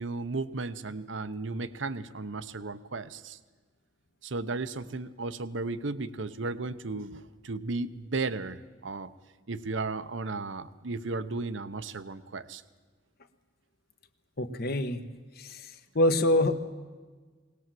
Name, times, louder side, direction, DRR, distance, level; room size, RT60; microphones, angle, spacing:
voice 1, 0.0-3.4 4.2-9.1 9.5-12.6, right 3 dB, 70° right, 13 dB, 0.8 m, -35 dB
voice 2, 14.4-15.0 15.4-15.7 15.9-16.5, left 1 dB, 50° left, 8 dB, 1.3 m, -25 dB
21.0 x 18.5 x 7.7 m, 1.4 s
head